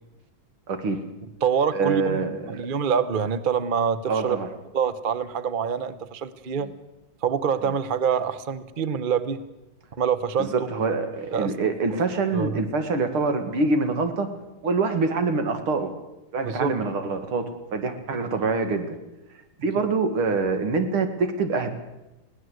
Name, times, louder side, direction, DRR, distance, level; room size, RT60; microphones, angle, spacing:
voice 1, 0.7-1.0 1.7-2.6 4.1-4.5 7.6-7.7 10.4-14.3 14.6-15.9 16.3-19.0 19.6-21.7, right 3 dB, 80° right, 8 dB, 2.9 m, -25 dB
voice 2, 1.4-4.4 4.7-6.7 7.2-9.4 10.0-10.7 11.3-11.5 12.3-12.7 16.4-16.7 19.8-19.9, right 7 dB, 50° right, 14 dB, 0.6 m, -25 dB
21.0 x 17.5 x 7.9 m, 0.95 s
omnidirectional pair, 2.3 m